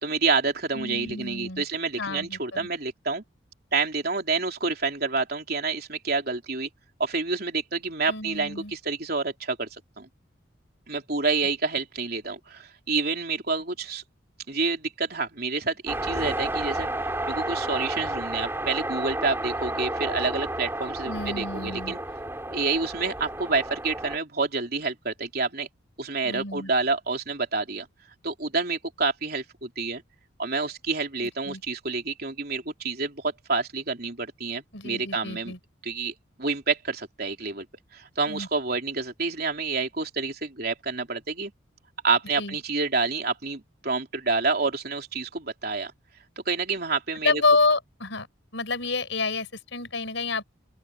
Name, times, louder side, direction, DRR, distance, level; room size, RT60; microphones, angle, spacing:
voice 1, 0.0-3.2 3.7-6.7 7.0-9.7 10.0-10.1 10.9-14.0 14.5-16.9 17.3-22.0 22.5-25.7 26.0-27.9 28.2-30.0 30.4-35.5 35.8-37.7 37.9-41.5 42.0-45.9 46.4-47.4, right 4 dB, 50° right, 3.6 m, -28 dB
voice 2, 0.7-1.6 2.0-2.7 8.1-8.7 21.1-21.9 26.2-26.7 31.2-31.6 34.7-35.6 38.3-38.5 42.4-42.6 47.2-48.3 48.5-50.4, left 3 dB, 70° left, 4.4 m, -28 dB
sound 1, 15.9-24.2, right 1 dB, 10° right, 5.0 m, -31 dB
open air
head